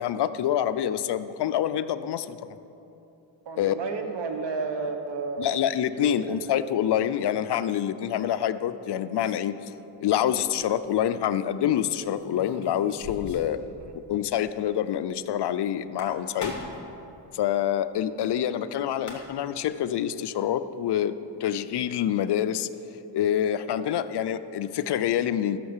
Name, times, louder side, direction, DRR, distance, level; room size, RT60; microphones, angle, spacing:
voice 1, 0.0-2.4 3.6-3.7 5.4-9.5 10.0-13.6 14.1-16.5 17.3-22.7 23.1-25.6, left 10 dB, 60° left, 13 dB, 0.6 m, -26 dB
voice 2, 3.4-5.6 6.0-6.5 13.6-13.9, right 4 dB, 65° right, 5 dB, 1.4 m, -33 dB
sound 1, 12.1-13.6 13.8-13.9 14.3-14.4 15.8-16.9 18.6-18.7 18.9-19.5, left 2 dB, 40° left, 2.2 m, -40 dB
13.0 x 6.5 x 7.2 m, 2.9 s
cardioid pair, 95°, 46 cm